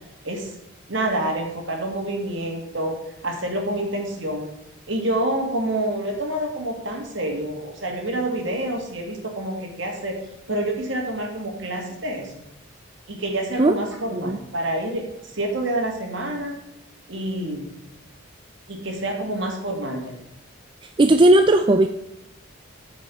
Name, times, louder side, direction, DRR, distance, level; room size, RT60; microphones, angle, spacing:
voice 1, 0.9-3.0 3.2-4.5 4.9-10.2 10.5-12.4 13.1-16.5 17.1-17.7 18.7-20.1, right 1 dB, 60° right, 2 dB, 2.1 m, -27 dB
voice 2, 21.0-21.9, right 1 dB, 25° right, 8 dB, 0.3 m, -16 dB
9.0 x 5.2 x 6.2 m, 0.92 s
head